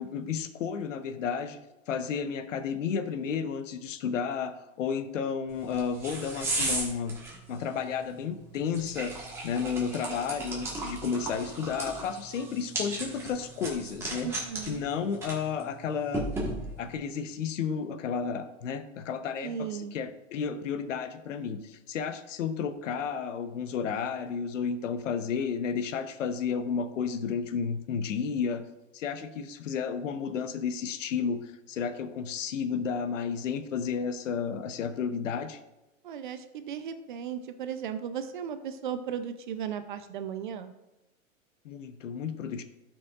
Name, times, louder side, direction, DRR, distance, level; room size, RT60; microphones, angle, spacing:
voice 1, 0.0-1.6 1.9-7.2 7.5-9.1 9.4-14.3 14.6-16.3 16.8-28.7 28.9-35.6 41.6-42.6, left 6 dB, 65° left, 10 dB, 0.9 m, -32 dB
sound 1, 5.5-17.0, right 2 dB, 5° right, 1.3 m, -37 dB
voice 2, 14.2-14.8 19.4-20.0 36.0-40.7, right 8 dB, 40° right, 10 dB, 0.5 m, -36 dB
12.0 x 5.9 x 2.4 m, 0.97 s
hypercardioid pair, 155°, 40 cm